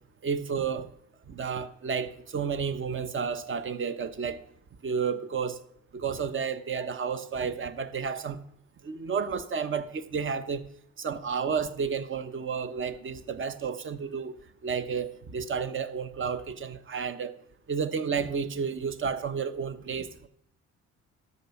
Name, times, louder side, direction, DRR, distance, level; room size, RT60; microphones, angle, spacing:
voice 1, 0.2-0.9 1.3-4.4 4.8-5.6 5.9-8.4 8.8-10.6 11.0-14.3 14.6-17.3 17.7-20.3, right 6 dB, 40° right, 1.0 m, -31 dB
12.5 x 5.4 x 7.1 m
cardioid pair, 90°, 30 cm